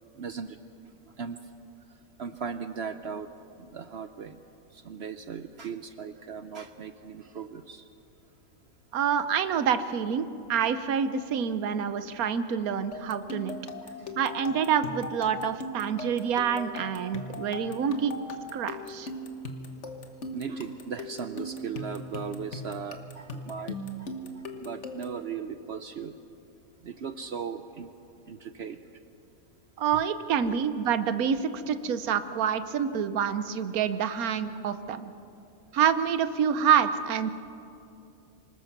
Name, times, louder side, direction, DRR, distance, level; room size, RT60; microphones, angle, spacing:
voice 1, 0.2-0.6 1.2-1.4 2.2-3.3 3.6-4.4 4.7-7.8 13.8-13.9 18.0-18.1 20.3-24.1 24.4-26.1 26.8-27.9 28.3-28.8 30.4-30.6, right 6 dB, 55° right, 10 dB, 0.8 m, -37 dB
voice 2, 8.9-13.6 14.2-18.1 18.5-19.1 29.8-35.1 35.7-37.3, right 7 dB, 80° right, 12 dB, 1.3 m, -27 dB
sound 1, 12.9-25.2, left 1 dB, 55° left, 1.6 m, -39 dB
26.5 x 19.5 x 6.0 m, 2.7 s
omnidirectional pair, 1.5 m